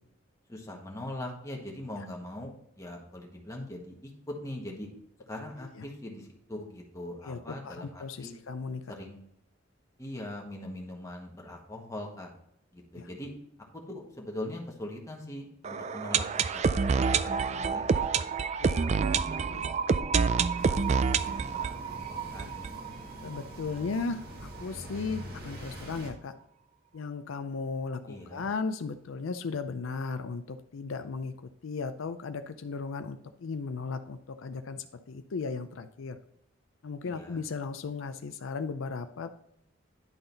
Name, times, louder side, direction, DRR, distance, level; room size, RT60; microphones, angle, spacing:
voice 1, 0.5-4.9 5.3-8.3 8.9-9.2 10.0-12.3 12.7-13.3 13.7-18.2 18.6-19.6 20.2-22.7 28.1-28.5 37.0-37.4, left 1 dB, 15° left, -1 dB, 1.5 m, -42 dB
voice 2, 7.3-8.8 12.9-13.0 18.6-18.9 19.5-19.7 23.2-26.3 26.9-31.4 31.6-36.2 36.8-39.3, left 4 dB, 85° left, 9 dB, 0.5 m, -36 dB
sound 1, 15.6-23.4 23.7-23.8 24.0-24.1 24.6-24.7, right 5 dB, 35° right, 0.3 m, -28 dB
sound 2, 20.6-26.1, equal, 50° right, 1.6 m, -44 dB
10.5 x 3.9 x 4.0 m, 0.75 s
head